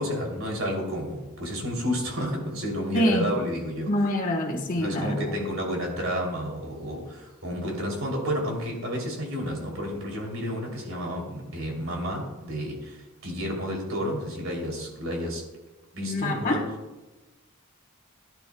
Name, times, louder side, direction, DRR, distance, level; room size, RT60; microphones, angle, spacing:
voice 1, 0.0-3.9 4.8-15.4 15.9-16.6, equal, 65° right, 0 dB, 3.1 m, -31 dB
voice 2, 2.9-3.3 3.9-5.2 16.0-16.7, left 1 dB, 40° left, 1 dB, 1.3 m, -25 dB
17.0 x 10.5 x 2.3 m, 1.1 s
head